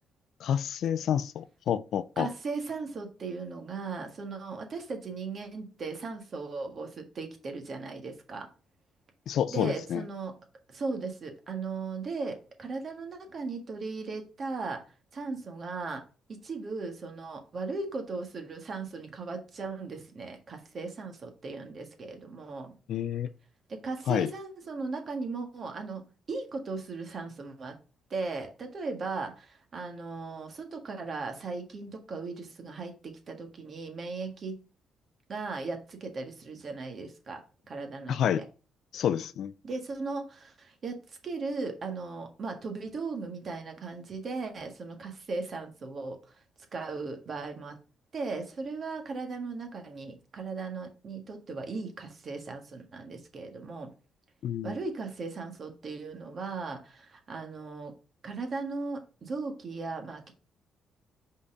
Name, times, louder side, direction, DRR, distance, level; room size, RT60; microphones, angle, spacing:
voice 1, 0.4-2.3 9.3-10.0 22.9-23.3 24.1-24.3 38.1-38.4 38.9-39.5 54.4-54.8, left 9 dB, 70° left, 0.4 m, -29 dB
voice 2, 2.1-8.5 9.5-10.3 10.7-14.8 15.1-16.0 16.4-22.7 23.8-26.0 26.3-27.8 28.1-34.6 35.3-38.5 39.6-46.4 46.7-47.8 48.1-53.9 54.6-57.9 58.2-60.3, right 4 dB, 45° right, 1.7 m, -37 dB
5.2 x 4.2 x 4.9 m
cardioid pair, 90°, 0 cm